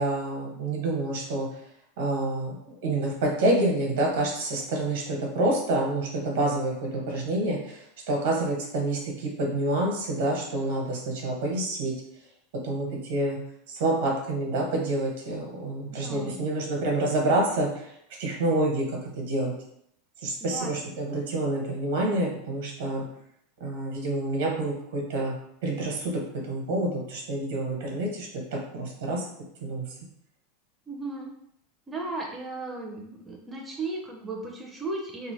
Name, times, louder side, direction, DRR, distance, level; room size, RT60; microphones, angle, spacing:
voice 1, 0.0-1.5 2.0-11.9 12.6-13.4 13.7-17.9 18.2-19.5 20.2-23.0 23.6-25.4 25.6-26.2 26.5-29.3 29.6-29.9, right 2 dB, 75° right, 0 dB, 1.0 m, -28 dB
voice 2, 15.9-16.4 20.5-20.7 30.9-31.3 31.9-35.3, right 2 dB, 10° right, -1 dB, 0.4 m, -35 dB
2.8 x 2.4 x 3.0 m, 0.74 s
supercardioid pair, 165°, 0 cm